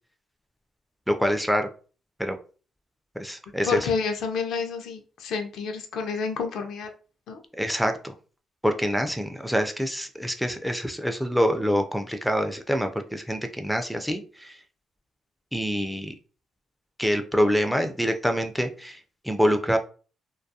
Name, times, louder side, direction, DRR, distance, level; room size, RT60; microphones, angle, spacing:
voice 1, 1.1-1.7 2.2-2.4 3.2-3.8 7.6-8.1 8.6-14.6 15.5-16.1 17.0-19.8, equal, ahead, 5 dB, 0.3 m, -26 dB
voice 2, 3.6-6.9 7.3-7.4, left 5 dB, 75° left, 5 dB, 0.5 m, -29 dB
2.3 x 2.2 x 2.7 m, 0.38 s
cardioid pair, 90°, 0 cm